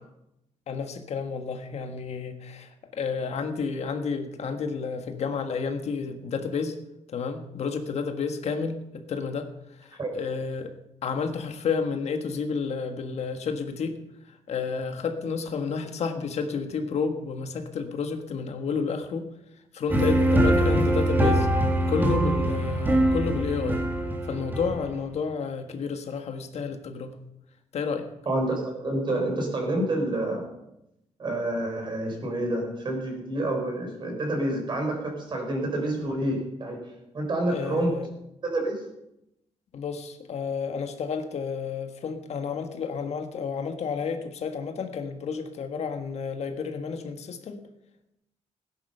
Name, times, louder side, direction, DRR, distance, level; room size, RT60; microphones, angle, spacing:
voice 1, 0.7-6.7 7.1-9.5 9.8-10.7 11.0-14.0 14.5-19.3 19.7-21.5 21.9-23.8 24.3-27.2 27.7-28.1 37.5-38.1 39.7-47.6, left 5 dB, 60° left, 6 dB, 1.5 m, -31 dB
sound 1, 19.9-25.1, right 1 dB, 15° right, 1.9 m, -23 dB
voice 2, 28.3-30.5 31.2-36.8 37.1-37.9 38.5-38.9, right 1 dB, 40° right, 2 dB, 4.4 m, -28 dB
16.5 x 10.0 x 5.6 m, 0.87 s
cardioid pair, 140°, 12 cm